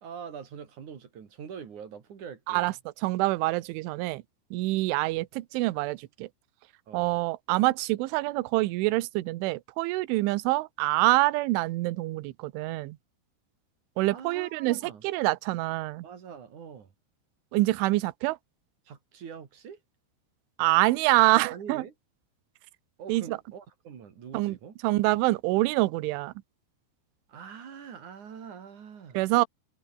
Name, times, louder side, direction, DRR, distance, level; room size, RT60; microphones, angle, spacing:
voice 1, 0.0-2.7 6.9-7.1 14.1-15.1 16.0-16.9 18.9-19.8 21.5-21.9 23.0-24.8 27.3-29.2, right 7 dB, 45° right, 3.5 m, -44 dB
voice 2, 3.0-4.2 4.5-6.3 6.9-13.0 14.0-16.0 17.5-18.4 20.6-21.8 23.1-23.4 24.3-24.6 24.8-26.3 29.1-29.5, right 20 dB, 75° right, 3.2 m, -26 dB
omnidirectional pair, 6.0 m